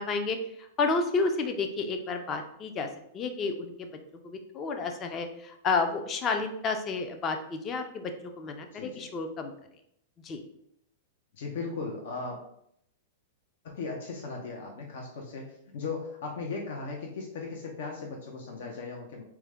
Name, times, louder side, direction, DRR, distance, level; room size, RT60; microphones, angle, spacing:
voice 1, 0.0-2.9 3.1-3.9 4.2-8.1 8.4-9.5 10.2-10.4, left 4 dB, 25° left, 6 dB, 0.5 m, -31 dB
voice 2, 8.7-9.1 11.4-12.4 13.6-15.5 15.7-19.2, left 4 dB, 65° left, 1 dB, 0.7 m, -37 dB
4.5 x 2.2 x 3.5 m, 0.73 s
hypercardioid pair, 140°, 0 cm